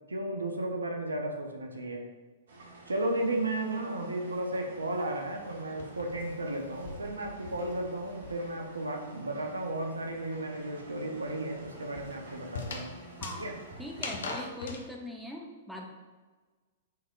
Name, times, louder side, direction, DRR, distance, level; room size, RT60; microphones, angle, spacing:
voice 1, 0.1-2.1 2.9-12.9 13.4-13.6, right 1 dB, 75° right, 2 dB, 0.7 m, -34 dB
sound 1, 2.5-14.2, right 2 dB, 60° right, 1.2 m, -50 dB
sound 2, 4.9-8.7 9.0-14.8, left 3 dB, 60° left, 0.7 m, -43 dB
voice 2, 13.8-15.8, left 1 dB, ahead, -1 dB, 0.6 m, -41 dB
6.2 x 3.5 x 2.4 m, 1.3 s
figure-of-eight pair, 105°, 0 cm